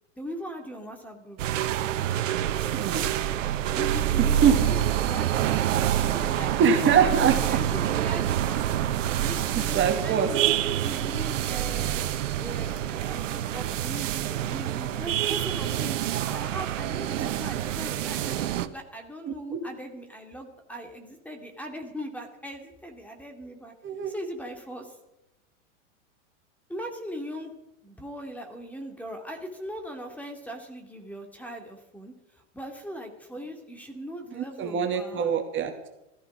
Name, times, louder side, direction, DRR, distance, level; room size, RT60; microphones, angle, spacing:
voice 1, 0.2-1.4 3.8-5.6 5.9-8.6 9.0-10.5 10.8-23.7 24.1-24.9 26.7-27.5 27.8-32.1 32.5-35.3, equal, 5° left, 3 dB, 2.6 m, -39 dB
sound 1, 1.4-18.7, right 11 dB, 80° right, 1.1 m, -27 dB
voice 2, 2.7-3.1 4.2-4.5 6.6-7.6 9.5-10.3 17.2-17.4 19.5-19.6 23.8-24.1 34.3-35.9, right 7 dB, 30° right, 4 dB, 2.2 m, -24 dB
14.5 x 14.5 x 6.2 m, 0.92 s
hypercardioid pair, 115°, 38 cm